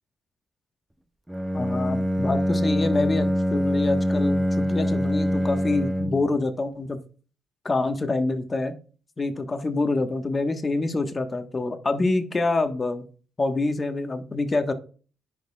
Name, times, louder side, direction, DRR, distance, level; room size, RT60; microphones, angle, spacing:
Bowed string instrument, 1.3-6.4, equal, 10° right, 0.5 m, -24 dB
voice 1, 1.5-7.0 7.6-8.7 9.2-13.0 13.4-14.7, left 3 dB, 30° left, 7 dB, 1.2 m, -26 dB
10.0 x 5.1 x 2.3 m, 0.37 s
cardioid pair, 90°, 0 cm